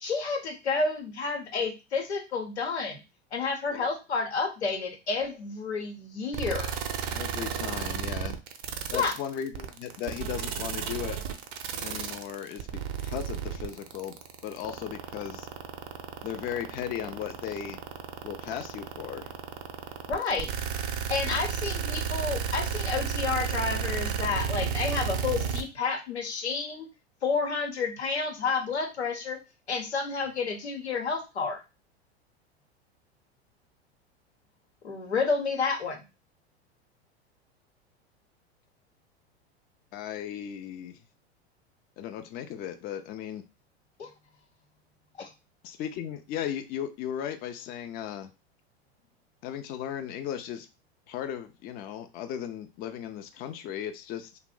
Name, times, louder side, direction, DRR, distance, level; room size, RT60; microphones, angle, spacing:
voice 1, 0.0-3.0 3.3-6.8 8.9-9.1 20.1-20.5 21.1-26.9 27.2-29.4 29.7-31.6 34.8-36.0 44.0-44.1 45.2-45.3, left 4 dB, 90° left, 3 dB, 0.8 m, -30 dB
sound 1, 6.3-25.6, right 7 dB, 45° right, 0.5 m, -32 dB
voice 2, 7.1-8.4 8.9-11.2 11.8-14.2 14.4-15.5 16.2-17.8 18.2-19.3 39.9-41.0 42.0-43.4 45.6-48.3 49.4-50.7 51.1-54.4, left 9 dB, 30° left, 7 dB, 0.4 m, -36 dB
2.5 x 2.0 x 3.6 m, 0.28 s
hypercardioid pair, 90°, 32 cm